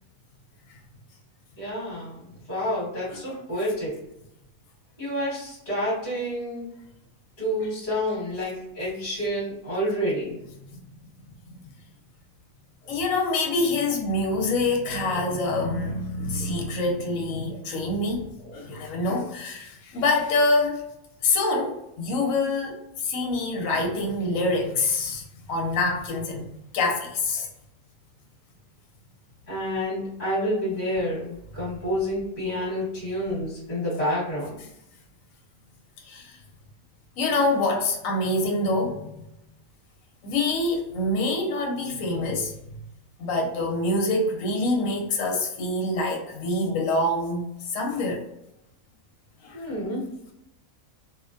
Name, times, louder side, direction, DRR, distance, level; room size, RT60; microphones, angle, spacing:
voice 1, 1.6-3.9 5.0-6.7 7.4-10.4 15.1-15.3 16.5-16.7 17.5-17.6 18.4-18.6 29.5-34.6 49.5-50.1, equal, 30° left, -8 dB, 1.1 m, -29 dB
voice 2, 12.9-20.9 21.2-26.5 26.7-27.5 36.1-36.4 37.2-39.1 40.2-42.5 43.2-48.2 49.4-49.6, left 2 dB, 75° left, 0 dB, 0.9 m, -26 dB
2.4 x 2.1 x 2.5 m, 0.85 s
omnidirectional pair, 1.4 m